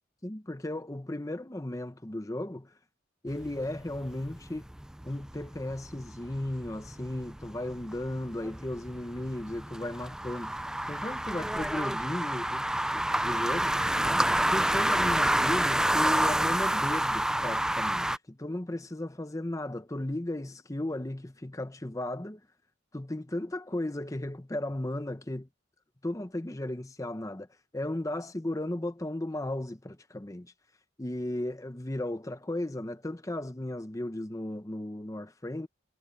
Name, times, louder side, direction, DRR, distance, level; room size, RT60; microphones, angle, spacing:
voice 1, 0.2-2.7 3.2-4.7 5.0-10.6 10.9-13.8 14.5-22.4 22.9-25.5 26.0-27.5 27.7-30.5 31.0-35.7, left 1 dB, 15° left, 0.8 m, -35 dB
sound 1, 3.3-18.2, right 1 dB, 5° right, 0.3 m, -29 dB
head